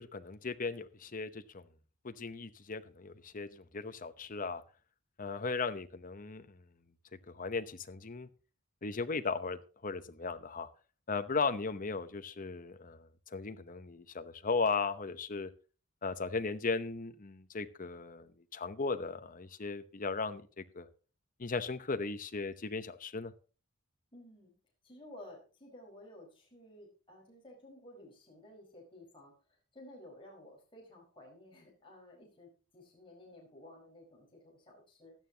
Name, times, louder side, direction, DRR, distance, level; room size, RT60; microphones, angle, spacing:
voice 1, 0.0-1.7 2.0-4.6 5.2-6.6 7.3-8.3 8.8-10.7 11.1-15.5 16.0-20.9 21.4-23.3, left 4 dB, 40° left, 10 dB, 0.9 m, -37 dB
voice 2, 24.1-24.6 24.8-29.3 29.7-35.1, left 1 dB, 25° left, -2 dB, 4.8 m, -54 dB
16.5 x 11.5 x 2.9 m, 0.37 s
head